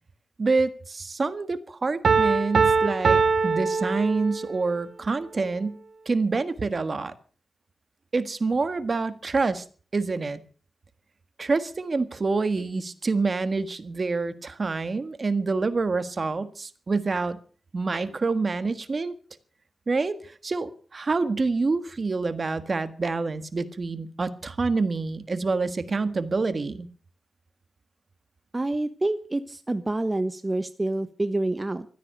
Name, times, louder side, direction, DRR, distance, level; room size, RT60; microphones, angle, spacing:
voice 1, 0.4-5.8 6.0-7.1 8.1-9.6 9.9-10.4 11.4-17.4 17.7-19.1 19.9-26.9, right 3 dB, 45° right, 1.7 m, -27 dB
Piano, 2.0-4.6, right 5 dB, 65° right, 1.0 m, -22 dB
voice 2, 28.5-31.9, right 2 dB, 25° right, 1.2 m, -27 dB
15.5 x 13.5 x 6.6 m
cardioid pair, 70°, 0 cm